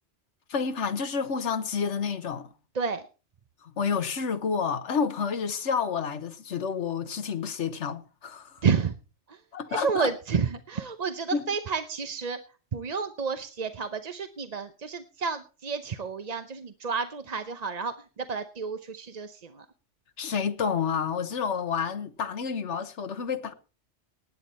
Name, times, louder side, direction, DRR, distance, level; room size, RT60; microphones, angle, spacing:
voice 1, 0.5-2.5 3.6-8.6 9.5-10.1 11.3-11.4 20.2-23.5, left 6 dB, 80° left, 1.4 m, -29 dB
voice 2, 8.6-8.9 9.3-9.4 9.7-12.4 12.7-19.6, right 5 dB, 40° right, 0.8 m, -30 dB
18.5 x 8.8 x 4.2 m
omnidirectional pair, 1.2 m